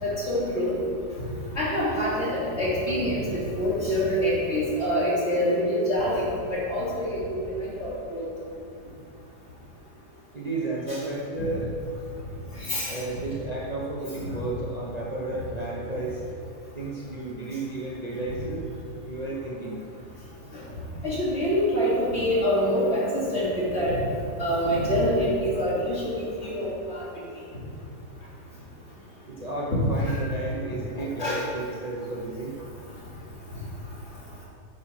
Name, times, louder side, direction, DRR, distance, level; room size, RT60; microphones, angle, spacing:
voice 1, 0.0-0.7 1.5-3.2 3.5-6.3 6.7-7.2 7.6-8.2 10.9-11.0 12.6-13.0 21.0-23.9 24.4-27.0 30.1-30.2 31.0-31.4, equal, 40° left, -7 dB, 3.1 m, -25 dB
voice 2, 10.3-11.7 12.9-16.3 16.7-18.6 19.1-19.8 29.3-32.5, right 2 dB, 30° right, -5 dB, 1.0 m, -32 dB
9.2 x 6.4 x 5.9 m, 2.6 s
omnidirectional pair, 1.7 m